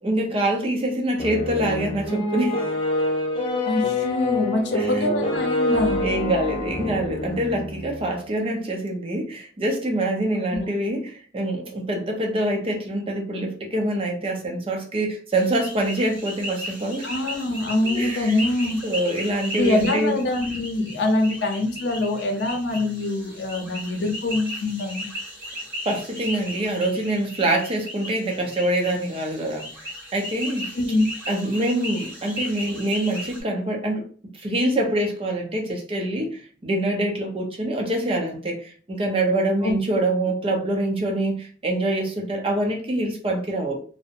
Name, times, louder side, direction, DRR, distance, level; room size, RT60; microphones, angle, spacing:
voice 1, 0.0-2.6 4.7-5.4 6.0-17.1 17.8-18.4 18.8-20.1 25.9-30.7 31.3-34.0 34.4-43.8, right 1 dB, 30° right, 1 dB, 0.5 m, -25 dB
sound 1, 1.2-8.1, left 2 dB, 30° left, 0.4 m, -26 dB
voice 2, 3.7-6.1 10.5-10.7 17.0-18.8 19.6-25.0 30.7-31.1 39.6-39.7, left 2 dB, 80° left, 3 dB, 0.6 m, -24 dB
sound 2, 15.3-33.4, equal, 10° right, 1.1 m, -36 dB
2.7 x 2.0 x 2.5 m, 0.41 s
head